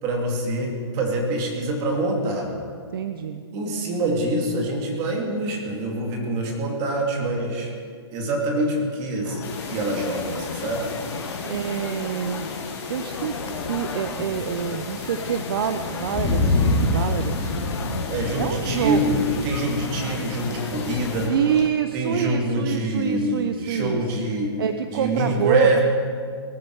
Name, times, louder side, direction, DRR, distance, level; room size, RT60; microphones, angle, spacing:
voice 1, 0.0-2.5 3.5-7.7 8.1-10.9 18.1-21.3 21.9-24.6 24.9-25.8, right 1 dB, 25° right, 0 dB, 2.7 m, -25 dB
voice 2, 2.9-3.4 11.4-12.5 12.9-17.6 18.4-19.0 21.3-24.2 24.6-25.8, right 8 dB, 55° right, 9 dB, 0.7 m, -26 dB
sound 1, 9.2-21.7, left 6 dB, 75° left, 1.2 m, -35 dB
sound 2, 9.4-21.3, left 2 dB, 20° left, 3.1 m, -29 dB
19.5 x 13.5 x 4.8 m, 2.2 s
hypercardioid pair, 160°, 15 cm